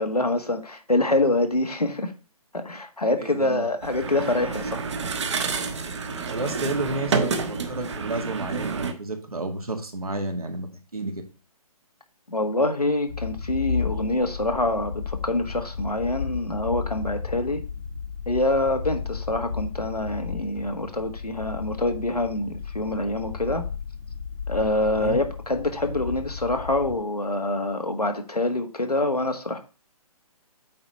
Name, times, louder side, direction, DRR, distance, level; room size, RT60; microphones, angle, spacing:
voice 1, 0.0-2.1 2.5-4.8 12.3-17.6 18.3-23.6 24.5-29.6, left 2 dB, 90° left, 1.6 m, -25 dB
voice 2, 3.2-3.7 6.3-11.2 24.9-25.2, right 2 dB, 75° right, 2.1 m, -31 dB
sound 1, 3.8-8.9, right 4 dB, 50° right, 1.3 m, -29 dB
sound 2, 13.1-27.0, left 6 dB, 70° left, 1.7 m, -33 dB
8.6 x 4.1 x 4.4 m
figure-of-eight pair, 140°, 19 cm